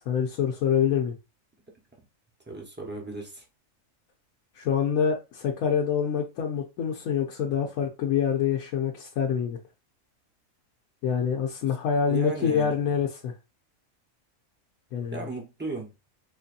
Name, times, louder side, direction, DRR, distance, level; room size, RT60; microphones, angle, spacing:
voice 1, 0.1-1.2 4.6-9.6 11.0-13.3 14.9-15.2, left 7 dB, 90° left, 1.1 m, -26 dB
voice 2, 2.5-3.4 12.1-12.7 15.1-15.9, right 2 dB, 10° right, 0.8 m, -35 dB
4.5 x 2.6 x 2.5 m
omnidirectional pair, 1.4 m